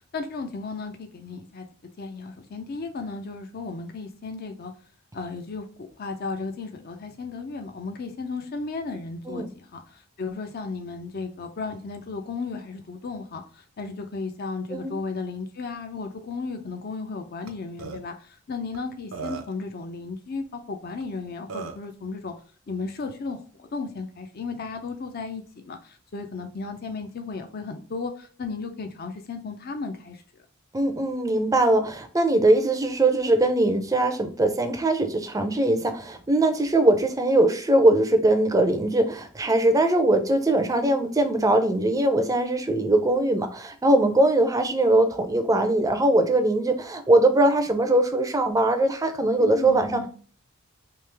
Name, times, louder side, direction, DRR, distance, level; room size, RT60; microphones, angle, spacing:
voice 1, 0.1-1.7 2.0-4.7 5.1-22.3 22.7-30.2 49.4-50.1, left 4 dB, 45° left, 6 dB, 0.4 m, -34 dB
Burping eructation, 17.5-17.6 17.8-18.0 18.7-18.8 19.1-19.6 21.0-21.1 21.5-21.9, right 5 dB, 65° right, 0.5 m, -35 dB
voice 2, 30.7-50.1, right 1 dB, 15° right, 6 dB, 0.5 m, -21 dB
3.1 x 2.8 x 3.3 m, 0.43 s
head